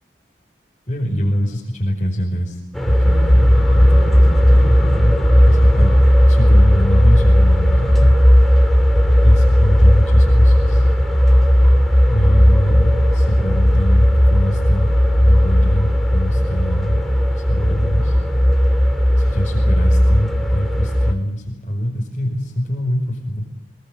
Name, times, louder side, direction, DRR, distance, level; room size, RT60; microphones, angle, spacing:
voice 1, 0.9-2.6 2.9-8.2 9.2-10.9 12.1-14.9 15.2-17.0 17.3-18.2 19.2-23.4, equal, 35° left, -4 dB, 5.5 m, -23 dB
sound 1, 2.7-21.1, equal, ahead, 2.5 m, -14 dB
26.5 x 20.5 x 8.3 m, 0.86 s
head